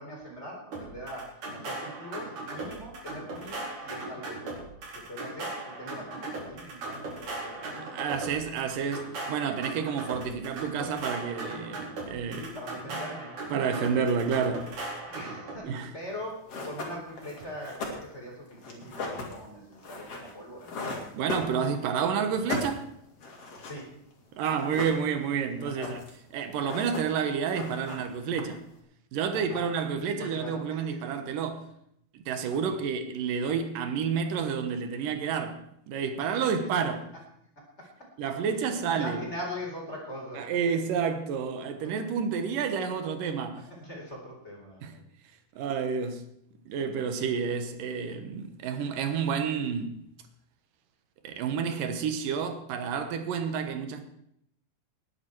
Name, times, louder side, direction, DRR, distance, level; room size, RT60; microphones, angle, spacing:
voice 1, 0.0-4.6 5.1-7.6 12.3-13.4 15.0-21.2 23.7-23.9 25.6-26.0 29.3-29.7 30.0-31.0 32.5-32.7 36.2-36.5 38.8-40.5 41.8-41.9 43.8-45.0, equal, 20° left, 4.1 m, -42 dB
sound 1, 0.7-15.6, right 2 dB, 65° right, 5.7 m, -38 dB
voice 2, 7.6-12.5 12.9-13.0 13.5-14.7 15.6-15.9 21.1-22.9 24.3-26.0 26.3-28.6 29.1-31.7 32.1-35.6 35.9-37.1 38.2-39.2 40.3-43.6 44.8-45.0 45.6-46.2 46.7-50.0 51.2-54.0, right 6 dB, 85° right, 2.9 m, -30 dB
sound 2, 16.1-16.2 16.5-22.0 22.2-23.9 24.1-24.2 24.4-25.4 25.6-26.2 26.5-27.2 27.5-28.7, left 3 dB, 50° left, 3.6 m, -37 dB
20.0 x 9.6 x 4.7 m
omnidirectional pair, 3.7 m